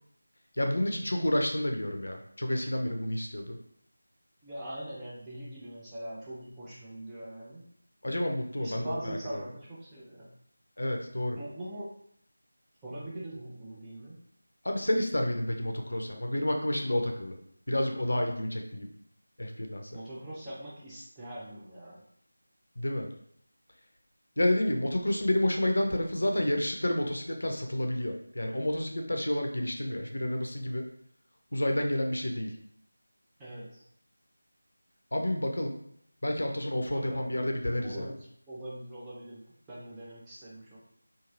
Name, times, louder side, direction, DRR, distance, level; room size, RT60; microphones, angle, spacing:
voice 1, 0.6-3.6 8.0-9.4 10.8-11.4 14.6-17.3 17.7-18.9 19.4-19.9 22.8-23.1 24.4-30.9 31.5-32.5 35.1-35.8 36.2-38.1, left 1 dB, 65° left, 3 dB, 0.5 m, -30 dB
voice 2, 4.4-7.7 8.6-10.4 11.4-12.0 12.8-14.2 19.9-22.0 33.4-33.8 36.7-37.3 37.8-40.8, right 1 dB, 10° right, -8 dB, 0.5 m, -42 dB
3.0 x 2.5 x 2.5 m, 0.67 s
figure-of-eight pair, 165°, 0 cm